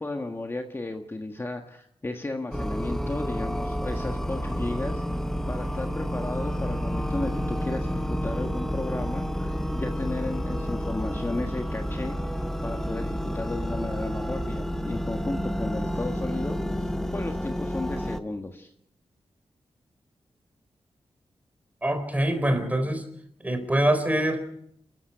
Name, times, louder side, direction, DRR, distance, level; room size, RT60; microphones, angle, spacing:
voice 1, 0.0-5.0 5.5-12.2 12.6-16.6 17.1-18.7, left 2 dB, 25° left, 4 dB, 1.5 m, -34 dB
sound 1, 2.5-18.2, equal, 5° left, 1.2 m, -30 dB
voice 2, 21.8-23.1 23.4-24.4, right 1 dB, 15° right, 8 dB, 3.9 m, -24 dB
29.5 x 14.5 x 6.8 m, 0.71 s
wide cardioid pair, 125°, 10 cm